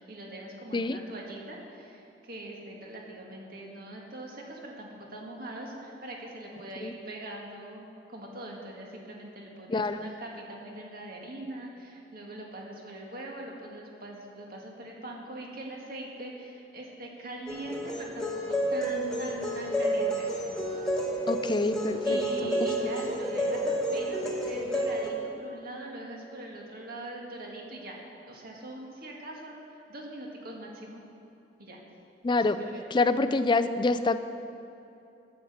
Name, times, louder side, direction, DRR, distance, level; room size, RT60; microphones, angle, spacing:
voice 1, 0.0-20.3 22.0-28.0 28.3-31.0 31.6-31.8 32.6-32.8, right 1 dB, 55° right, -1 dB, 1.7 m, -42 dB
voice 2, 9.7-10.0 21.3-22.5 32.2-32.6 32.9-34.2, left 3 dB, 25° left, 11 dB, 0.4 m, -26 dB
sound 1, 17.5-25.1, equal, 5° left, 1.2 m, -30 dB
10.0 x 7.2 x 7.9 m, 2.8 s
head